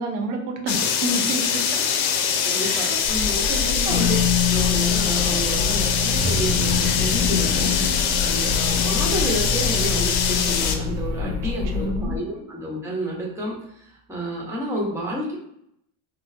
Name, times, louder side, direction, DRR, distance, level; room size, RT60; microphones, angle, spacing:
voice 1, 0.0-1.7 2.6-3.0 3.5-4.1 11.2-12.2, right 2 dB, 75° right, 2 dB, 0.9 m, -30 dB
sound 1, 0.7-10.8, left 7 dB, 85° left, 0.6 m, -23 dB
voice 2, 2.4-4.2 4.5-15.3, right 1 dB, 5° right, -4 dB, 0.9 m, -30 dB
sound 2, 3.0-12.2, left 5 dB, 40° left, 1.4 m, -29 dB
sound 3, 3.9-11.9, left 5 dB, 45° right, 0.8 m, -26 dB
3.7 x 2.0 x 2.7 m, 0.74 s
cardioid pair, 125°, 43 cm